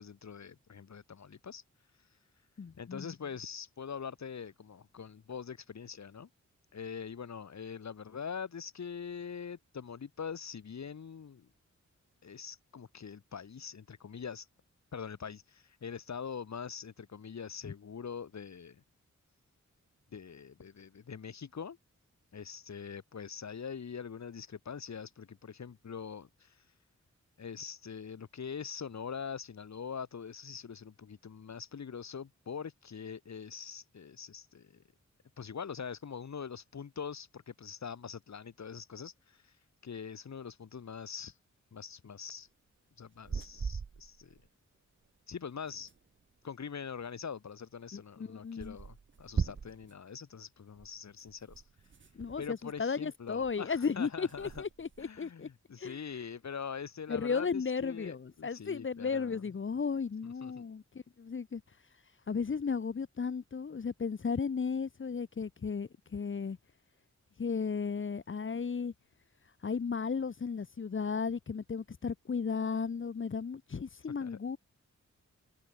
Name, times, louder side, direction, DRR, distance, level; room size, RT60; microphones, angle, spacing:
voice 1, 0.0-1.6 2.8-6.3 6.7-11.5 12.2-14.5 14.9-18.8 20.1-21.8 22.3-26.6 27.4-34.8 35.4-39.5 39.8-41.3 41.7-42.5 43.0-44.4 45.3-45.9 46.4-51.6 52.4-54.6 55.0-59.4 60.4-60.6 74.2-74.4, left 6 dB, 65° left, 2.5 m, -43 dB
voice 2, 2.6-3.1 17.6-17.7 47.9-48.8 52.1-55.5 55.8-56.0 57.1-61.6 62.3-66.6 67.4-68.9 69.6-74.6, left 5 dB, 40° left, 1.0 m, -35 dB
sound 1, 43.1-44.5 44.7-44.8 45.0-45.1 45.3-46.4 47.4-47.5 47.8-47.9 48.6-50.0 50.7-53.1 53.4-53.8 54.1-55.3, right 5 dB, 40° right, 1.1 m, -41 dB
wide cardioid pair, 95°, 29 cm